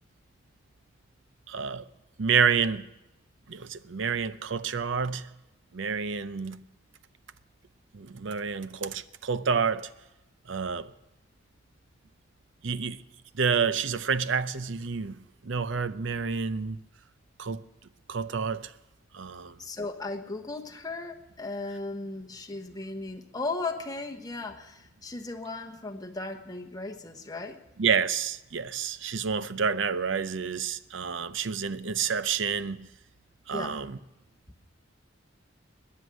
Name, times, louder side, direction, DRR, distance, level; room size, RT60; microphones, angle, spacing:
voice 1, 1.5-1.9 2.2-2.9 3.5-5.3 5.7-6.6 7.9-9.9 10.5-10.9 12.6-13.0 13.3-16.8 17.4-17.6 18.1-18.7 19.1-19.6 27.8-32.9 33.5-34.0, right 6 dB, 70° right, 0.6 m, -29 dB
voice 2, 19.6-27.6 33.5-33.8, left 3 dB, 20° left, 1.1 m, -36 dB
20.5 x 9.6 x 6.3 m
head